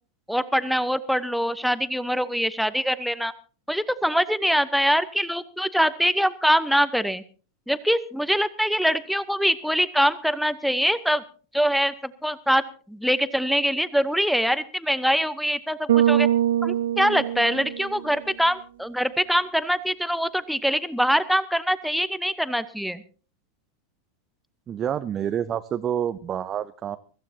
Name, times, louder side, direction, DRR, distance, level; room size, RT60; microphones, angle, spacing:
voice 1, 0.3-3.3 3.7-7.2 7.7-11.2 11.5-16.3 16.6-23.0, equal, ahead, 14 dB, 0.9 m, -24 dB
Bass guitar, 15.9-18.2, right 11 dB, 60° right, 1.0 m, -23 dB
voice 2, 24.7-27.0, right 9 dB, 25° right, 11 dB, 0.6 m, -28 dB
23.5 x 15.0 x 2.8 m, 0.39 s
figure-of-eight pair, 90°, 0 cm